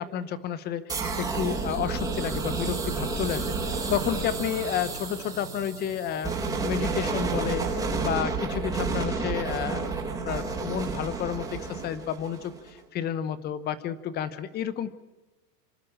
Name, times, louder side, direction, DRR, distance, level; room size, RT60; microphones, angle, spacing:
voice 1, 0.0-6.3 6.6-9.9 10.2-14.9, left 9 dB, 20° left, 14 dB, 1.0 m, -31 dB
sound 1, 0.9-12.7, right 4 dB, 5° right, 4.5 m, -31 dB
sound 2, 3.2-9.6, right 5 dB, 40° right, 5.7 m, -45 dB
26.5 x 12.0 x 8.7 m, 1.1 s
supercardioid pair, 155°, 50 cm